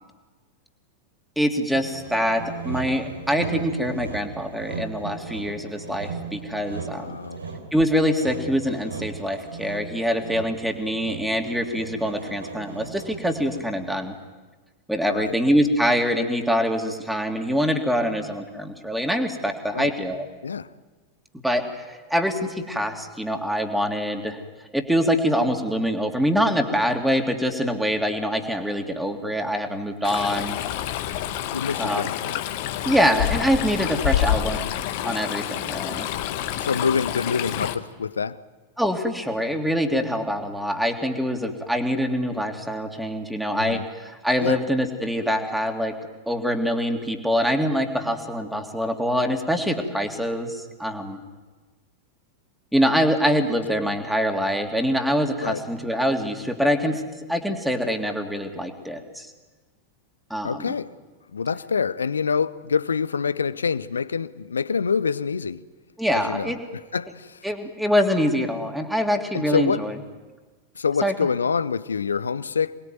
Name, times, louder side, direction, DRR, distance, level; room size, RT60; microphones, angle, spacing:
voice 1, 1.4-7.2 7.7-14.1 14.9-20.2 21.4-24.4 24.7-30.6 31.8-32.1 32.8-34.6 35.0-36.1 38.8-46.0 46.3-51.2 52.7-59.3 60.3-60.7 66.0-66.6 67.4-70.0 71.0-71.1, equal, ahead, 3.1 m, -24 dB
Sawing, 1.7-13.8, right 5 dB, 75° right, 3.8 m, -37 dB
voice 2, 6.9-7.4 15.1-15.3 19.7-19.9 20.4-20.7 31.5-32.4 34.1-34.2 36.6-38.4 43.6-43.8 44.4-44.6 55.4-55.6 60.4-60.9 61.3-65.6 66.1-67.4 69.3-69.8 70.8-72.8, left 6 dB, 70° left, 0.9 m, -26 dB
Stream, 30.0-37.7, left 11 dB, 50° left, 1.6 m, -28 dB
27.5 x 21.0 x 9.4 m
figure-of-eight pair, 90°, 0 cm